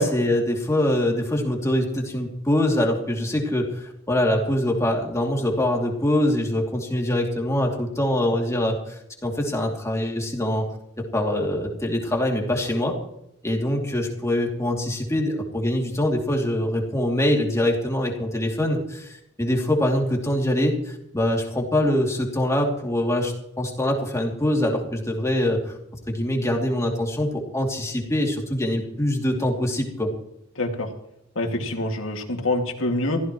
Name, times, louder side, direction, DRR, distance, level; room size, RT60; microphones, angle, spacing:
voice 1, 0.0-8.9 9.2-10.7 11.1-13.0 13.4-25.8 26.1-30.1, left 1 dB, 15° left, 0 dB, 2.8 m, -24 dB
voice 2, 30.6-30.9 31.4-33.2, left 1 dB, 75° left, 3 dB, 2.3 m, -25 dB
23.0 x 15.5 x 3.1 m, 0.78 s
head